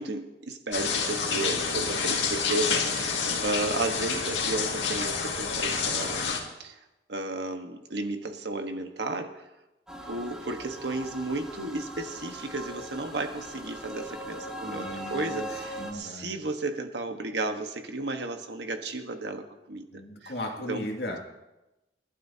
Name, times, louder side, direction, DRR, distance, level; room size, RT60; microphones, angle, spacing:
voice 1, 0.0-6.8 7.1-9.4 10.1-19.8 20.2-20.3 20.7-20.8, right 2 dB, 65° right, 5 dB, 1.4 m, -33 dB
sound 1, 0.7-6.4, left 5 dB, 75° left, 2.1 m, -28 dB
sound 2, 9.9-15.9, equal, 5° right, 2.1 m, -40 dB
voice 2, 14.6-15.5 15.8-16.4 19.9-21.2, left 1 dB, 60° left, 0 dB, 2.4 m, -36 dB
29.5 x 11.5 x 2.9 m, 0.98 s
head